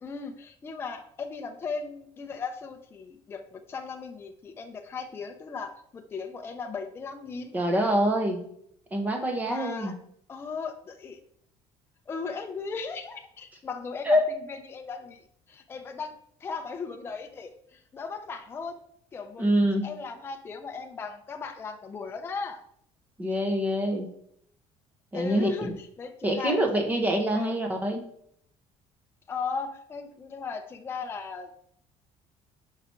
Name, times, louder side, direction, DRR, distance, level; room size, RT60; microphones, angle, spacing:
voice 1, 0.0-7.5 9.4-9.9 10.3-11.2 12.1-14.2 14.5-16.1 16.4-18.8 19.1-19.5 19.8-22.6 25.1-26.6 27.3-27.5 29.3-31.5, left 5 dB, 20° left, 5 dB, 0.5 m, -37 dB
voice 2, 7.5-8.4 8.9-9.9 14.0-14.2 19.4-19.9 23.2-24.1 25.1-25.5 26.2-28.0, equal, 15° right, 3 dB, 0.9 m, -25 dB
5.6 x 5.0 x 4.4 m, 0.69 s
cardioid pair, 170°, 12 cm